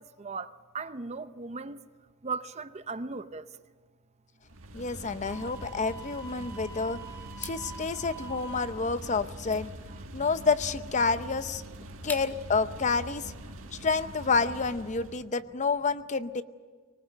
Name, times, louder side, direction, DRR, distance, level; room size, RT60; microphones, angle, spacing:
voice 1, 0.0-1.8 2.2-3.5 6.4-6.5, right 4 dB, 35° right, 0.6 m, -37 dB
sound 1, 4.4-15.3, right 1 dB, 85° right, 1.6 m, -44 dB
voice 2, 4.7-7.0 7.4-9.7 10.1-11.6 12.0-13.3 13.8-16.4, left 4 dB, 35° left, 0.7 m, -29 dB
Wind instrument woodwind instrument, 5.2-8.8, right 3 dB, 10° right, 3.8 m, -46 dB
sound 2, 7.3-12.6, left 2 dB, 10° left, 1.7 m, -47 dB
24.0 x 20.0 x 9.0 m
head